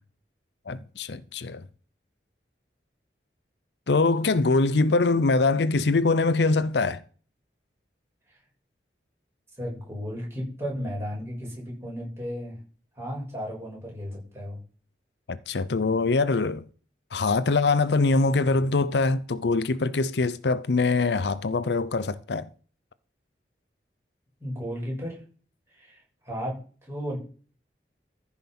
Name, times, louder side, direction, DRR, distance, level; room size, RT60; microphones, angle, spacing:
voice 1, 0.7-1.6 3.9-7.0 15.3-16.6 17.1-22.5, left 3 dB, 75° left, 0.6 m, -23 dB
voice 2, 9.6-12.5 13.0-14.6 24.4-25.2 25.7-26.6 26.8-27.2, equal, 15° right, 7.1 m, -34 dB
14.5 x 5.8 x 6.0 m
head